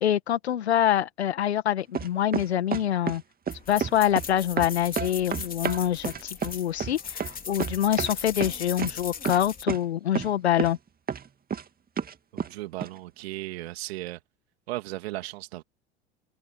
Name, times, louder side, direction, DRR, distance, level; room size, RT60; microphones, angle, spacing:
voice 1, 0.0-3.2 3.7-10.8, left 11 dB, 80° left, 2.0 m, -25 dB
sound 1, 1.9-3.2 3.5-4.3 4.6-8.1 8.4-8.9 9.3-9.4 9.7-9.8 10.2-10.3 10.6-10.8 11.1-11.6 12.0-12.5 12.8-12.9, right 7 dB, 30° right, 2.1 m, -30 dB
sound 2, 3.5-9.6, left 6 dB, 25° left, 4.2 m, -38 dB
voice 2, 12.3-14.2 14.7-15.6, right 18 dB, 70° right, 2.6 m, -36 dB
hypercardioid pair, 75°, 32 cm